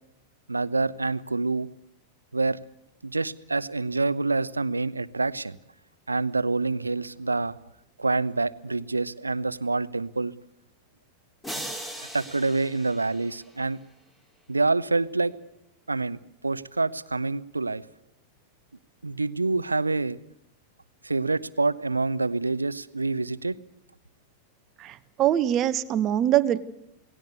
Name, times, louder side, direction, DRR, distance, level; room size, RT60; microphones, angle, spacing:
voice 1, 0.5-1.7 2.3-2.6 3.0-5.6 6.1-7.6 8.0-10.3 12.1-13.8 14.5-15.3 15.9-16.2 16.4-17.8 19.0-20.2 21.0-23.6, right 3 dB, 80° right, 16 dB, 0.9 m, -26 dB
sound 1, 11.4-13.8, equal, 10° left, 6.7 m, -39 dB
voice 2, 24.8-26.6, right 11 dB, 35° right, 12 dB, 1.4 m, -23 dB
28.5 x 19.0 x 8.1 m, 0.81 s
figure-of-eight pair, 90°, 0 cm